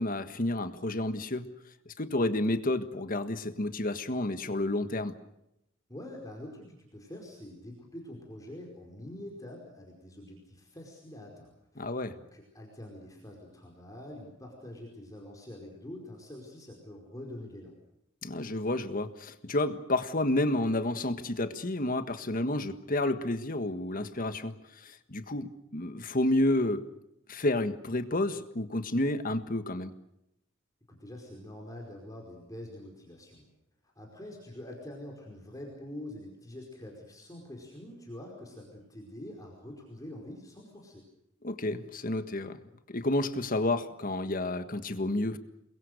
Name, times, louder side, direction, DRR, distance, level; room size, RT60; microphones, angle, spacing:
voice 1, 0.0-1.5 1.8-5.1 11.8-12.2 18.2-26.9 27.3-29.9 41.4-42.6 42.9-45.4, left 1 dB, 45° left, 10 dB, 1.6 m, -30 dB
voice 2, 5.9-17.7 30.9-33.4 33.8-41.1, left 1 dB, 15° left, -1 dB, 4.9 m, -45 dB
29.0 x 22.0 x 6.6 m, 0.81 s
head